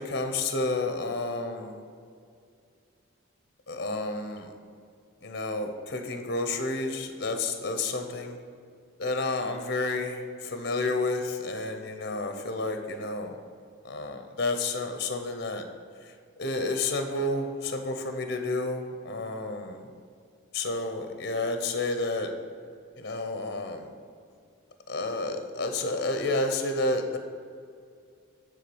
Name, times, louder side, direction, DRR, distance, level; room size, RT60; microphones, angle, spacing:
voice 1, 0.0-1.8 3.7-4.5 5.2-8.4 9.0-13.4 13.8-15.6 16.0-16.1 16.4-19.9 20.5-22.3 23.0-23.9 24.9-27.2, left 2 dB, 50° left, 6 dB, 0.8 m, -30 dB
9.6 x 3.7 x 7.0 m, 2.3 s
head